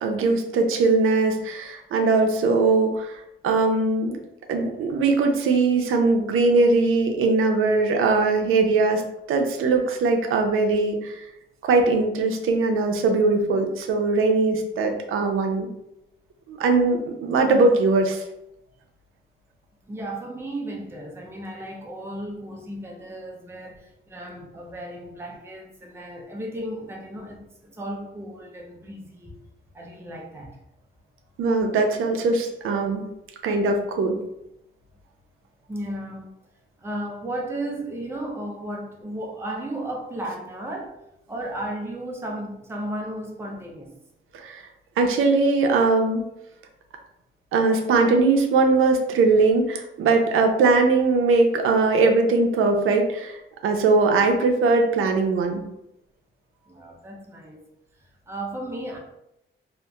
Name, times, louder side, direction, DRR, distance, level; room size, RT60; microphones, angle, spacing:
voice 1, 0.0-4.2 4.5-9.0 9.3-11.2 11.6-15.7 16.5-18.2 31.4-33.1 33.4-34.2 44.3-44.6 45.0-46.2 47.5-55.6, right 3 dB, 90° right, 4 dB, 0.4 m, -20 dB
voice 2, 19.8-29.4 29.7-30.6 35.7-36.3 36.8-41.0 41.3-44.0 56.7-57.6 58.3-59.0, right 1 dB, 10° right, 0 dB, 0.4 m, -34 dB
2.8 x 2.4 x 2.2 m, 0.84 s
wide cardioid pair, 140°, 21 cm